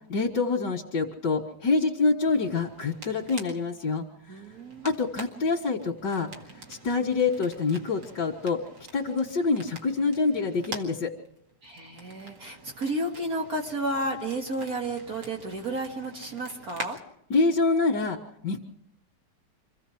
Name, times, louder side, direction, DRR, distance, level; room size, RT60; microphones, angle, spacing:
voice 1, 0.1-4.0 4.8-6.3 6.7-8.6 8.9-11.1 17.3-18.2 18.4-18.7, left 4 dB, 85° left, -3 dB, 2.4 m, -26 dB
sound 1, 2.3-17.0, right 2 dB, 90° right, 2.8 m, -46 dB
voice 2, 4.3-4.9 11.6-17.0, right 1 dB, 55° right, 1 dB, 2.3 m, -32 dB
26.5 x 16.0 x 6.2 m, 0.72 s
omnidirectional pair, 1.9 m